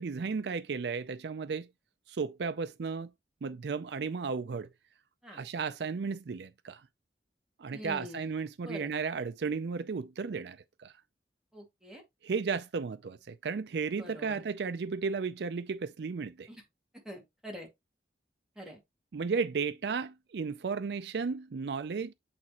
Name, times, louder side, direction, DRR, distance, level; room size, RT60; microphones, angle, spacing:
voice 1, 0.0-1.7 2.1-3.1 3.4-4.7 5.3-6.8 7.6-10.6 10.8-10.9 12.2-16.5 19.1-22.1, right 5 dB, 65° right, 0.4 m, -34 dB
voice 2, 7.7-8.3 8.6-8.9 11.5-12.0 14.0-14.4 16.5-16.6 17.0-17.7 18.6-18.8, equal, 5° right, 2.3 m, -44 dB
8.7 x 4.2 x 2.9 m
head